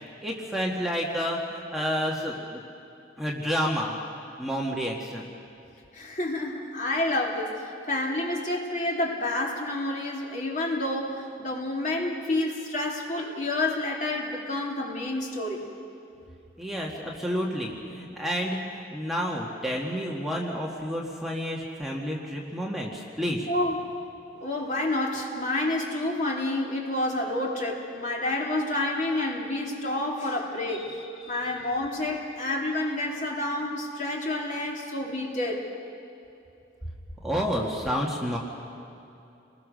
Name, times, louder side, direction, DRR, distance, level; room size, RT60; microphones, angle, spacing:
voice 1, 0.2-2.6 3.2-4.0 4.4-5.3 16.6-23.5 31.2-31.4 37.2-38.4, equal, ahead, -3 dB, 1.9 m, -30 dB
voice 2, 5.9-15.7 23.5-23.9 24.4-30.9 31.3-35.7, left 2 dB, 45° left, -1 dB, 3.1 m, -29 dB
29.5 x 21.0 x 6.5 m, 2.8 s
head